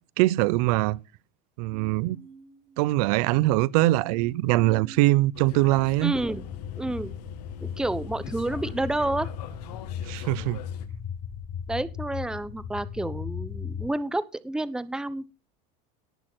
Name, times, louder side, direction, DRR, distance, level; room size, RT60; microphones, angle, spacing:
voice 1, 0.2-1.0 1.6-2.2 2.8-6.1 10.1-10.6, right 18 dB, 70° right, 0.7 m, -22 dB
sound 1, 1.7-9.1 9.8-10.3, right 4 dB, 30° right, 3.6 m, -53 dB
sound 2, 5.3-10.9, left 9 dB, 90° left, 2.3 m, -42 dB
voice 2, 6.0-6.4 6.8-7.1 7.6-9.3 11.7-15.3, right 2 dB, 5° right, 0.8 m, -29 dB
sound 3, 6.1-13.9, left 7 dB, 45° left, 5.0 m, -37 dB
18.5 x 6.7 x 6.1 m
supercardioid pair, 135°, 20 cm